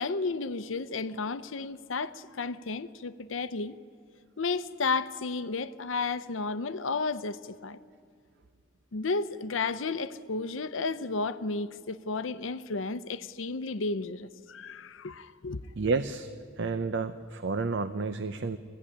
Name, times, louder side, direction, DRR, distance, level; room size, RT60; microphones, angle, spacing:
voice 1, 0.0-3.8 4.4-7.8 8.9-15.6, left 4 dB, 75° left, 0.7 m, -32 dB
voice 2, 15.8-16.3 16.6-18.6, right 4 dB, 65° right, 0.7 m, -30 dB
21.0 x 15.5 x 10.0 m
head